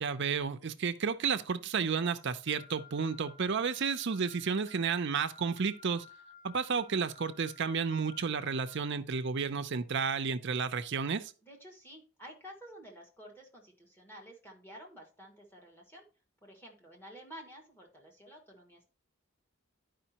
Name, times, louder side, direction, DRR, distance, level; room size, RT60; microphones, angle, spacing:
voice 1, 0.0-6.0 6.4-11.3, right 5 dB, 55° right, 0.5 m, -32 dB
Wind instrument woodwind instrument, 2.5-8.9, left 5 dB, 75° left, 2.5 m, -54 dB
voice 2, 11.4-16.0 16.4-18.9, equal, 10° left, 1.6 m, -51 dB
11.0 x 5.1 x 2.9 m
head